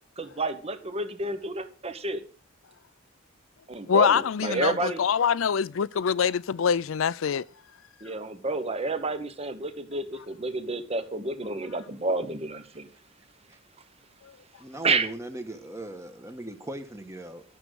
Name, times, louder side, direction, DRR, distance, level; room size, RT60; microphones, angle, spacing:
voice 1, 0.2-2.2 3.7-5.0 8.0-12.9 14.8-15.1, right 3 dB, 30° right, 1.1 m, -30 dB
voice 2, 3.9-7.4, left 7 dB, 80° left, 0.5 m, -24 dB
voice 3, 14.6-17.4, right 1 dB, 15° right, 1.4 m, -38 dB
12.0 x 6.5 x 6.2 m
head